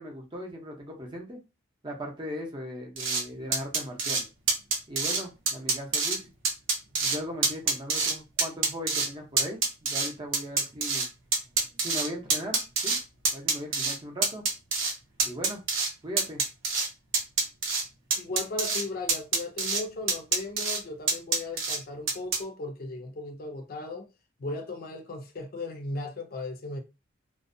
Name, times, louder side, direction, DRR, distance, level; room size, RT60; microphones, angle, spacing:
voice 1, 0.0-1.4 1.8-4.2 4.9-6.2 7.0-11.1 11.8-12.9 13.3-14.4 15.2-15.6 16.0-16.4, equal, 25° right, 0.6 m, -38 dB
sound 1, 3.0-3.2 3.5-4.2 4.5-5.2 5.5-6.2 6.4-7.2 7.4-8.1 8.4-9.1 9.4-11.1 11.3-13.0 13.2-14.0 14.2-14.9 15.2-15.9 16.2-16.9 17.1-17.8 18.1-18.8 19.1-19.8 20.1-20.8 21.1-21.8 22.1-22.4, right 4 dB, 70° right, 0.7 m, -26 dB
voice 2, 18.2-24.1 24.4-26.8, left 2 dB, 50° left, 0.5 m, -36 dB
2.5 x 2.1 x 2.5 m
head